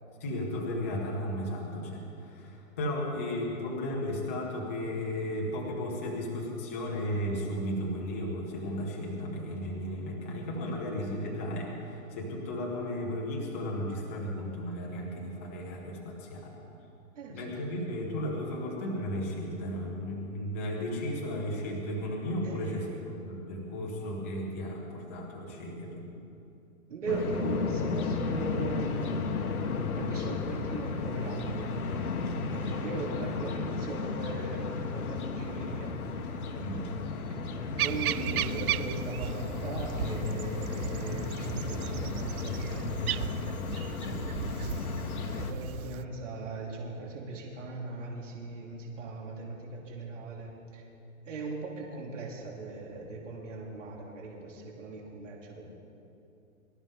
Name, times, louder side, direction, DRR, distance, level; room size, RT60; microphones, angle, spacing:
voice 1, 0.2-16.6 17.3-26.1 36.6-36.9 44.0-44.2, left 1 dB, 10° left, -4 dB, 0.8 m, -34 dB
voice 2, 17.1-18.0 22.4-23.0 26.9-29.2 30.0-31.7 32.5-35.9 37.8-43.6 45.3-50.8 51.2-55.6, right 3 dB, 60° right, -2 dB, 2.9 m, -39 dB
sound 1, 27.1-45.5, left 4 dB, 85° left, 1.5 m, -34 dB
sound 2, 37.8-46.0, right 12 dB, 85° right, 0.6 m, -36 dB
24.0 x 13.0 x 3.7 m, 2.8 s
hypercardioid pair, 180°, 42 cm